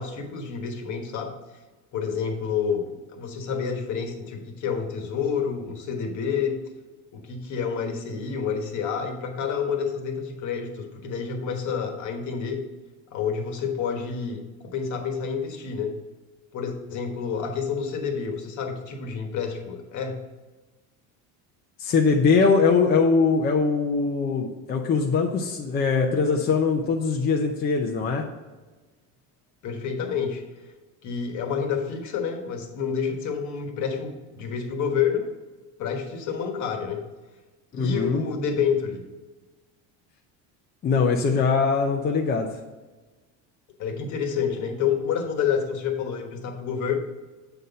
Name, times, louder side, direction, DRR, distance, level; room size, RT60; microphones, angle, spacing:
voice 1, 0.0-1.4 1.9-6.6 7.1-12.7 13.1-16.0 16.5-20.2 29.6-30.4 31.0-35.3 35.8-37.1 37.7-39.1 43.8-47.0, left 6 dB, 50° left, 4 dB, 1.3 m, -29 dB
voice 2, 21.8-28.2 37.7-38.2 40.8-42.5, left 4 dB, 25° left, 1 dB, 0.6 m, -22 dB
7.9 x 4.1 x 5.5 m, 1.2 s
cardioid pair, 150°, 38 cm